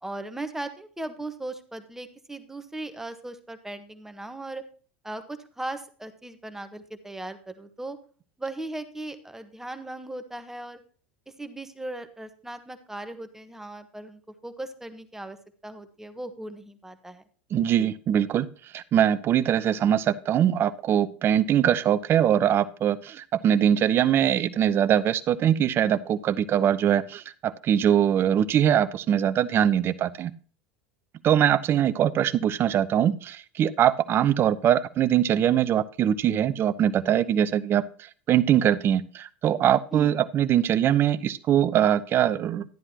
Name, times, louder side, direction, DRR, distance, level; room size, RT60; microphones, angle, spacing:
voice 1, 0.0-4.6 5.0-8.0 8.4-10.8 11.4-15.4 15.6-17.2 17.8-17.9 39.9-40.2, right 2 dB, 5° right, 8 dB, 1.3 m, -38 dB
voice 2, 17.5-18.5 18.7-30.3 31.2-37.8 38.3-42.6, right 10 dB, 40° right, 15 dB, 0.7 m, -22 dB
12.0 x 11.0 x 2.9 m, 0.41 s
hypercardioid pair, 85°, 6 cm